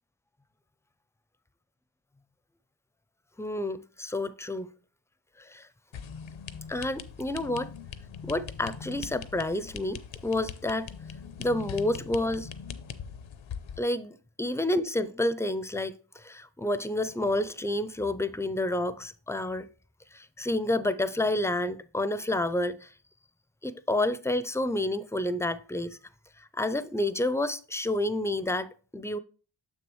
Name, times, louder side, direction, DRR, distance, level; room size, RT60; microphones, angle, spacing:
voice 1, 3.4-4.7 5.4-5.7 6.7-7.7 8.2-10.9 11.4-12.5 13.8-19.7 20.1-22.9 23.6-26.0 26.4-29.2, left 1 dB, 5° left, 0.4 m, -29 dB
sound 1, 5.9-13.8, left 7 dB, 80° left, 0.6 m, -41 dB
6.8 x 6.2 x 3.1 m
cardioid pair, 50°, 47 cm